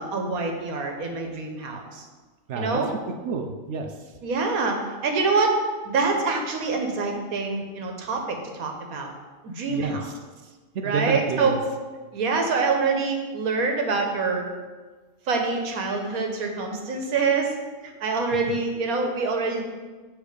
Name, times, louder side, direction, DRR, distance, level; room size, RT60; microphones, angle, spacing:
voice 1, 0.0-2.0 2.6-2.9 4.2-5.6 5.8-9.1 9.4-10.0 10.8-11.5 12.1-14.5 15.3-17.5 17.8-19.6, right 4 dB, 80° right, 3 dB, 1.4 m, -25 dB
voice 2, 2.5-4.1 9.7-10.1 10.4-11.6, right 5 dB, 65° right, 4 dB, 0.8 m, -30 dB
8.4 x 3.5 x 4.8 m, 1.3 s
omnidirectional pair, 1.5 m